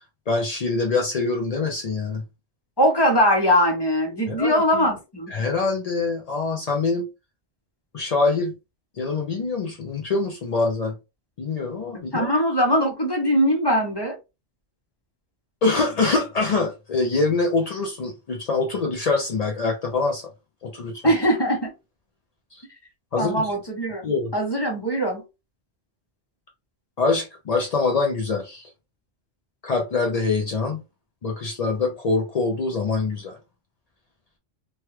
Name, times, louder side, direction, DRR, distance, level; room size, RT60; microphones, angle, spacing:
voice 1, 0.3-2.2 4.3-4.8 5.3-7.1 7.9-8.5 9.0-10.9 11.4-12.3 15.6-20.3 20.6-21.0 22.5-22.6 23.1-23.5 24.0-24.3 27.0-28.7 29.6-30.8 31.2-33.4, left 3 dB, 60° left, 0.4 m, -24 dB
voice 2, 2.8-5.3 12.1-14.2 21.0-21.7 23.2-24.0 24.3-25.2, equal, 25° left, 0.7 m, -21 dB
3.0 x 2.3 x 3.0 m
omnidirectional pair, 1.3 m